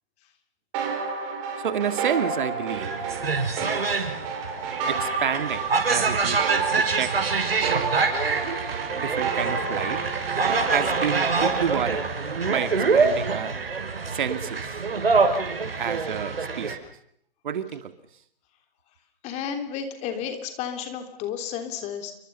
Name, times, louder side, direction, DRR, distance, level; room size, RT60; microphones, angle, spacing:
sound 1, 0.7-12.0, right 5 dB, 30° right, 6.4 m, -31 dB
voice 1, 1.6-3.0 4.9-7.1 8.9-10.0 10.7-12.1 12.5-13.5 14.1-14.8 15.8-16.8 17.4-17.9, right 8 dB, 55° right, 10 dB, 2.4 m, -29 dB
sound 2, 2.8-16.8, right 4 dB, 75° right, 6.5 m, -25 dB
voice 2, 19.2-22.1, left 8 dB, 20° left, 7 dB, 3.4 m, -32 dB
29.5 x 25.0 x 5.6 m, 0.70 s
hypercardioid pair, 140°, 30 cm